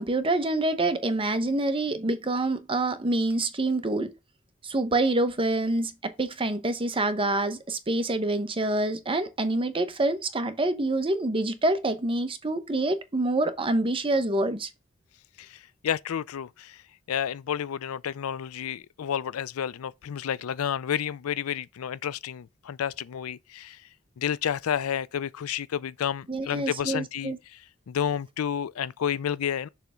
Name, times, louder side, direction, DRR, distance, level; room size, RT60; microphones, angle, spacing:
voice 1, 0.0-4.1 4.6-14.7 26.3-27.4, right 2 dB, 25° right, 0.9 m, -26 dB
voice 2, 15.4-16.8 17.1-23.8 24.2-27.6 27.9-29.7, left 9 dB, 85° left, 0.4 m, -30 dB
6.6 x 3.4 x 6.1 m
head